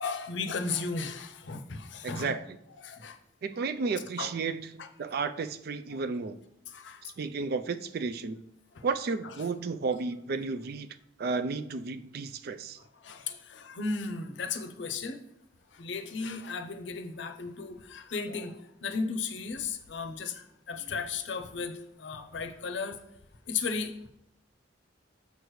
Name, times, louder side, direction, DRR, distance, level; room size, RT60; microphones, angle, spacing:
voice 1, 0.0-2.4 2.8-3.2 4.2-4.3 4.8-4.9 5.9-6.0 6.7-7.0 8.7-8.8 12.8-15.2 15.7-23.0 23.5-23.9, left 4 dB, 70° left, 7 dB, 0.6 m, -35 dB
voice 2, 2.0-2.4 3.4-6.4 7.2-8.4 8.8-10.9 11.2-12.8, right 4 dB, 55° right, 12 dB, 0.4 m, -32 dB
6.8 x 6.5 x 3.1 m, 0.81 s
head